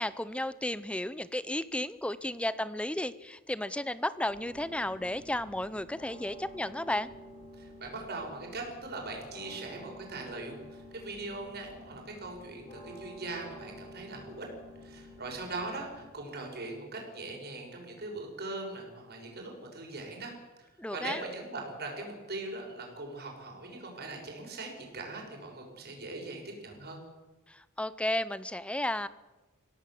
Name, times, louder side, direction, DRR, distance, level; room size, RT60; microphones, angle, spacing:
voice 1, 0.0-7.1 20.8-21.2 27.5-29.1, left 1 dB, 5° left, 16 dB, 0.6 m, -33 dB
sound 1, 4.3-16.1, left 1 dB, 30° left, 5.6 m, -50 dB
voice 2, 7.6-14.4 14.8-20.3 20.6-20.7 20.9-27.0, right 2 dB, 45° right, 1 dB, 6.1 m, -41 dB
24.5 x 17.0 x 7.7 m, 1.2 s
head